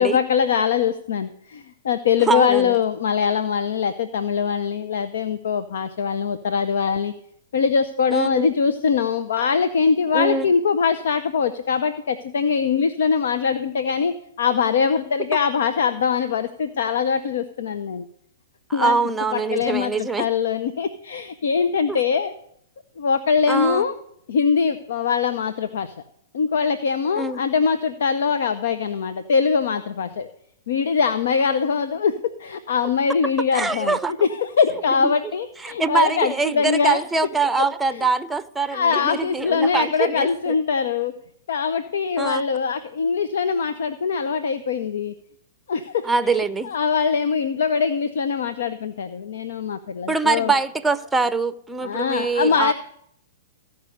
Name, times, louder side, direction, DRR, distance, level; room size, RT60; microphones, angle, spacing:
voice 1, 0.0-7.1 7.5-18.1 18.7-19.0 19.3-22.3 23.0-23.9 24.3-25.9 26.3-30.3 30.7-37.0 37.9-38.0 38.7-41.1 41.5-45.1 45.7-50.5 51.8-52.7, left 6 dB, 70° left, 0.7 m, -22 dB
voice 2, 2.3-2.7 8.1-8.5 10.1-10.5 18.7-20.3 21.9-22.0 23.5-23.8 27.1-27.4 33.5-34.1 35.0-35.1 35.6-40.5 42.2-42.4 46.0-46.7 50.1-52.7, right 4 dB, 5° right, 0.7 m, -23 dB
15.0 x 5.4 x 9.2 m
hypercardioid pair, 120°, 0 cm